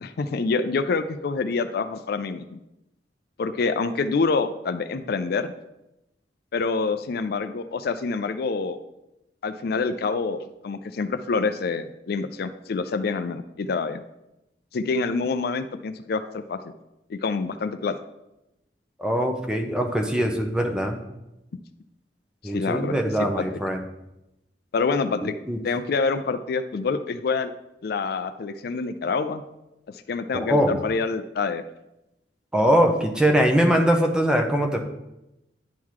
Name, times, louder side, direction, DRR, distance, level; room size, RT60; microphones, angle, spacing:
voice 1, 0.0-2.6 3.4-5.5 6.5-8.8 9.4-14.0 14.7-16.6 17.1-18.0 22.4-23.4 24.7-25.3 25.6-27.5 27.8-29.4 30.1-31.6, left 4 dB, 60° left, 10 dB, 0.4 m, -26 dB
voice 2, 19.0-21.0 22.4-23.8 25.5-25.6 30.3-30.7 32.5-34.8, equal, 5° right, 3 dB, 0.7 m, -22 dB
10.5 x 3.7 x 4.7 m, 0.90 s
head